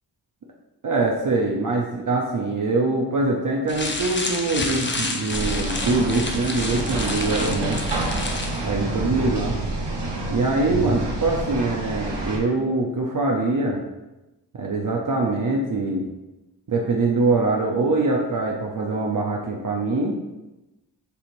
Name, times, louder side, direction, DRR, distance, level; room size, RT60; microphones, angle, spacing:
voice 1, 0.8-7.8 8.6-9.6 10.3-13.8 14.5-16.0 16.7-20.2, right 3 dB, 50° right, -2 dB, 0.7 m, -23 dB
sound 1, 3.7-8.7, left 2 dB, 25° left, 0.7 m, -30 dB
sound 2, 5.3-12.4, right 2 dB, 75° right, 1.0 m, -28 dB
6.8 x 2.9 x 2.6 m, 1.0 s
cardioid pair, 40°, 42 cm